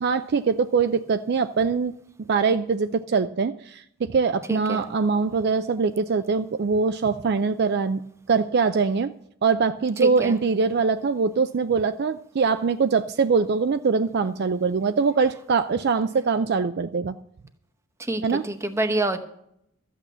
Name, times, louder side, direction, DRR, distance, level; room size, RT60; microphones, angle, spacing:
voice 1, 0.0-1.9 2.3-8.0 8.3-9.1 9.4-17.2 18.2-18.4, right 5 dB, 50° right, 11 dB, 0.4 m, -23 dB
voice 2, 4.5-4.8 10.0-10.3 18.1-19.2, right 1 dB, 15° right, 9 dB, 0.8 m, -26 dB
13.5 x 8.5 x 6.8 m, 0.73 s
head